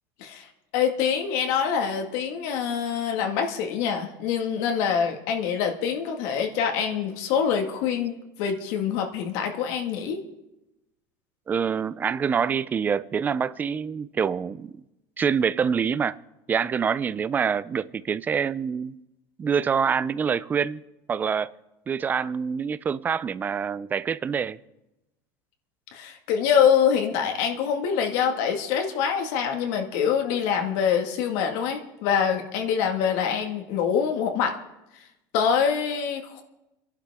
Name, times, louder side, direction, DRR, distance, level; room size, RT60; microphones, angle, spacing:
voice 1, 0.2-10.2 25.9-34.5 34.9-35.1 35.3-36.4, left 7 dB, 65° left, 1.9 m, -25 dB
voice 2, 11.5-14.8 15.2-16.2 16.5-19.0 19.4-20.8 21.1-21.5 21.9-24.6, right 6 dB, 20° right, 0.4 m, -26 dB
30.0 x 11.5 x 3.6 m
cardioid pair, 155°, 9 cm